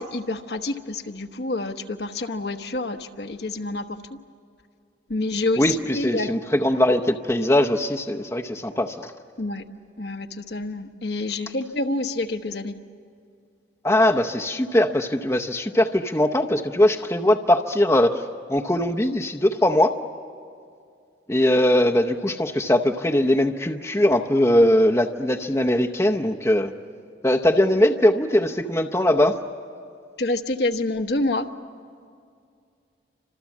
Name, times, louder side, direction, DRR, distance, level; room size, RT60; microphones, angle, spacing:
voice 1, 0.0-3.8 5.1-6.3 9.4-9.6 10.0-12.7 30.2-31.4, left 2 dB, 60° left, 6 dB, 1.1 m, -27 dB
voice 2, 5.6-9.1 13.8-18.2 18.5-19.9 21.3-26.7 27.2-29.4, left 1 dB, 15° left, 3 dB, 0.8 m, -20 dB
29.5 x 26.0 x 7.3 m, 2.3 s
head